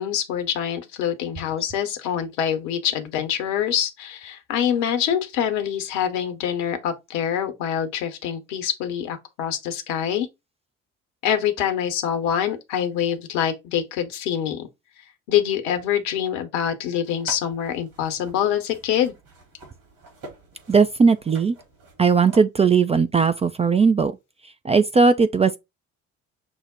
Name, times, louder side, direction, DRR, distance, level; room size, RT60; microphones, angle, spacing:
voice 1, 0.0-10.3 11.2-14.7 15.3-19.1, left 9 dB, 70° left, 1.0 m, -25 dB
sound 1, 17.0-22.4, right 2 dB, 60° right, 2.8 m, -45 dB
voice 2, 20.7-21.5 22.0-24.2 24.6-25.6, right 5 dB, 15° right, 0.3 m, -18 dB
6.2 x 2.1 x 3.6 m
figure-of-eight pair, 50°, 39 cm